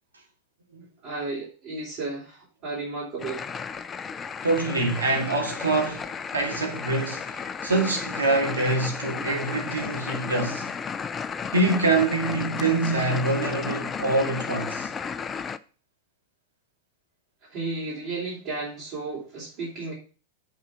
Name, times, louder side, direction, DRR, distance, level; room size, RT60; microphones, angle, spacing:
voice 1, 1.0-3.4 17.5-19.9, right 3 dB, 40° right, 4.0 m, -33 dB
sound 1, 3.2-15.6, left 6 dB, 20° left, 0.5 m, -33 dB
voice 2, 4.4-10.7 11.5-14.9, right 3 dB, 75° right, 2.3 m, -25 dB
7.8 x 5.7 x 6.0 m
figure-of-eight pair, 90°, 0 cm